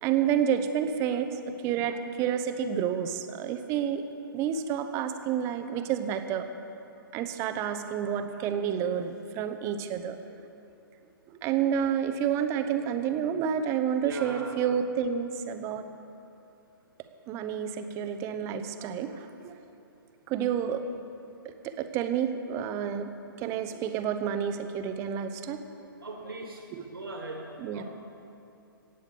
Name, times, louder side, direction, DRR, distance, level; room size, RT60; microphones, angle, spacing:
voice 1, 0.0-4.0 4.3-6.4 7.1-10.2 11.4-15.8 17.3-19.5 20.3-20.8 21.6-23.1 23.4-25.6 26.7-26.8 27.6-27.8, right 8 dB, 25° right, 8 dB, 0.9 m, -29 dB
voice 2, 14.0-14.5 26.0-27.4 27.7-27.8, right 2 dB, 75° right, 0 dB, 2.6 m, -39 dB
16.5 x 9.0 x 7.1 m, 2.7 s
figure-of-eight pair, 125°, 12 cm